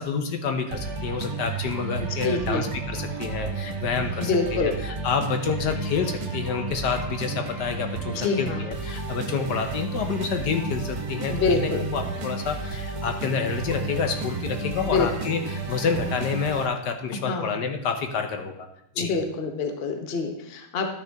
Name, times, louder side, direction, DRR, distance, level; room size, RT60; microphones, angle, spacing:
voice 1, 0.0-18.6 19.0-19.1, left 5 dB, 70° left, 6 dB, 1.4 m, -28 dB
sound 1, 0.7-16.7, right 4 dB, 60° right, 1.5 m, -32 dB
voice 2, 2.2-2.7 4.2-4.8 8.2-8.6 11.3-11.8 14.8-15.3 17.3-17.6 18.9-20.9, left 4 dB, 40° left, 5 dB, 0.9 m, -26 dB
11.5 x 6.5 x 3.5 m, 0.76 s
omnidirectional pair, 1.9 m